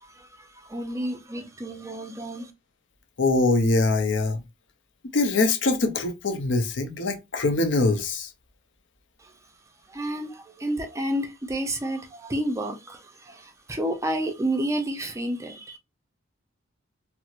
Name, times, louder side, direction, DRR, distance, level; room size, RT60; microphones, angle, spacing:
voice 1, 0.0-2.5 9.2-9.3 9.9-15.8, right 1 dB, 15° right, 0.5 m, -30 dB
voice 2, 3.2-4.4 5.1-8.3, left 3 dB, 60° left, 0.6 m, -23 dB
4.3 x 2.0 x 2.4 m
head